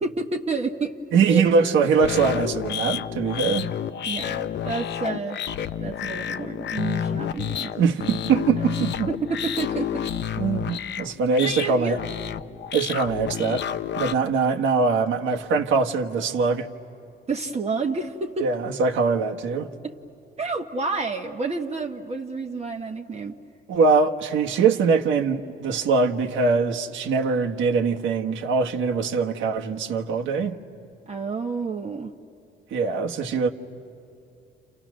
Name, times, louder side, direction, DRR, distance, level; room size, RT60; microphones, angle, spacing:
voice 1, 0.0-0.9 1.2-1.4 4.1-5.4 5.8-7.7 8.8-10.1 11.4-12.0 17.3-18.5 19.8-19.9 20.4-23.3 31.1-32.1, right 4 dB, 30° right, 1.2 m, -29 dB
voice 2, 1.1-3.7 7.8-9.1 10.4-12.0 12.7-13.7 14.0-16.7 18.4-19.7 23.7-30.6 32.7-33.5, right 5 dB, 80° right, 1.4 m, -22 dB
sound 1, 2.0-14.1, left 9 dB, 60° left, 0.7 m, -30 dB
29.5 x 29.5 x 6.3 m
cardioid pair, 90°, 20 cm